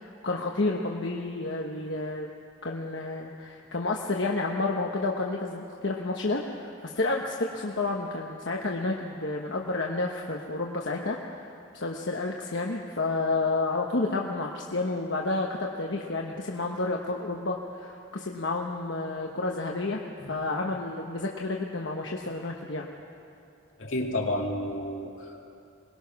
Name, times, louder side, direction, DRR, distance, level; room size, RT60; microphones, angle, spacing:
voice 1, 0.0-2.3 2.6-11.5 11.7-20.0 20.3-22.9, left 3 dB, 70° left, 0 dB, 1.1 m, -30 dB
voice 2, 23.8-25.5, left 1 dB, 85° left, 0 dB, 2.4 m, -31 dB
22.0 x 20.0 x 5.9 m, 2.6 s
head